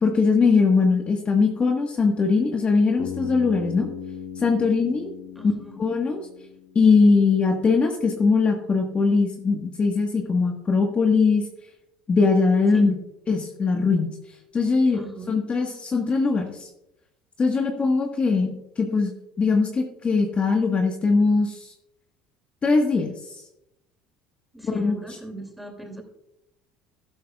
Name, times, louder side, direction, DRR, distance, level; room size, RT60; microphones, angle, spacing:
voice 1, 0.0-3.9 4.4-5.1 5.4-5.5 5.8-6.2 6.7-11.4 12.1-12.9 13.3-14.1 14.5-15.0 15.3-16.7 17.4-19.1 19.4-21.7 22.6-23.3 24.6-25.2, left 4 dB, 30° left, 2 dB, 1.5 m, -21 dB
Bass guitar, 3.0-7.1, left 8 dB, 60° left, 2.1 m, -37 dB
voice 2, 5.4-5.8 12.7-13.0 14.9-15.4 24.5-26.0, right 2 dB, ahead, 4 dB, 2.7 m, -38 dB
12.5 x 11.5 x 2.4 m, 0.84 s
hypercardioid pair, 80°, 4 cm